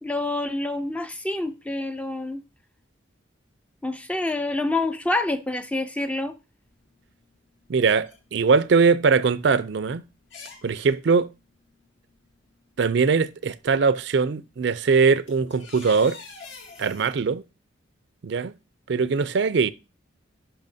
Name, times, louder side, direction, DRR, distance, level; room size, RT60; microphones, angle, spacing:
voice 1, 0.0-2.4 3.8-6.4, left 2 dB, 5° left, 0.4 m, -27 dB
sound 1, 6.7-6.8 7.5-8.7 8.9-9.0 9.7-9.8 10.2-10.9 12.3-12.4 13.0-13.4 14.7-14.8 15.1-17.2, left 5 dB, 70° left, 2.1 m, -45 dB
voice 2, 7.7-10.0 10.6-11.3 12.8-16.2 16.8-17.4 18.2-18.6 18.9-19.7, right 5 dB, 60° right, 0.4 m, -21 dB
10.5 x 5.6 x 2.7 m
head